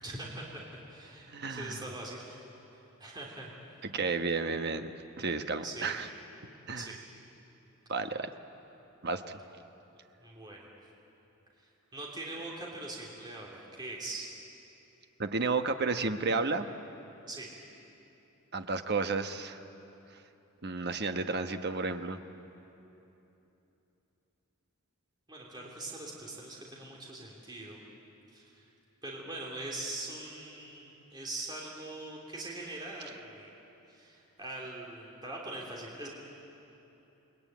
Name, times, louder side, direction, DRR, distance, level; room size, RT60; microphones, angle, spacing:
voice 1, 0.0-2.4 3.0-3.5 5.6-5.9 6.7-7.0 10.2-10.7 11.6-14.3 17.3-17.5 25.3-27.8 28.3-28.6 29.0-33.5 33.9-36.1, right 2 dB, 20° right, -3 dB, 3.2 m, -42 dB
voice 2, 1.3-1.8 3.8-6.1 6.7-6.9 7.9-8.3 9.0-9.4 15.2-16.7 18.5-19.6 20.6-22.2, right 4 dB, 50° right, 7 dB, 1.1 m, -32 dB
28.5 x 21.5 x 9.3 m, 3.0 s
head